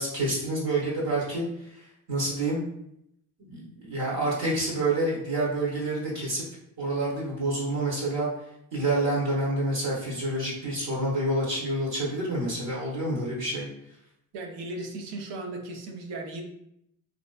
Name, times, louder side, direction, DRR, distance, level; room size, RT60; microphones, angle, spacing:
voice 1, 0.0-1.4 2.1-2.6 3.4-6.4 6.8-8.3 8.7-13.7, right 2 dB, 65° right, -4 dB, 1.0 m, -28 dB
voice 2, 14.3-16.4, right 2 dB, 80° right, 2 dB, 0.6 m, -36 dB
2.5 x 2.1 x 2.3 m, 0.76 s
hypercardioid pair, 45°, 40 cm